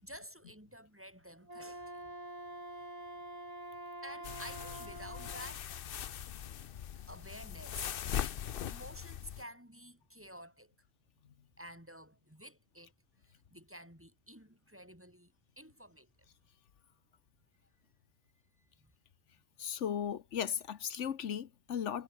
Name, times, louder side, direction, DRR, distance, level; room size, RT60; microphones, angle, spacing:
voice 1, 0.0-2.1 4.0-5.6 7.0-7.9 8.2-10.7 11.6-12.9 13.2-16.3 18.8-18.9, equal, 10° right, 5.9 m, -51 dB
Wind instrument woodwind instrument, 1.4-5.5, right 1 dB, 30° right, 4.0 m, -46 dB
sound 1, 4.2-9.4, left 10 dB, 55° left, 0.8 m, -41 dB
voice 2, 19.6-22.0, left 8 dB, 90° left, 1.3 m, -36 dB
omnidirectional pair, 1.2 m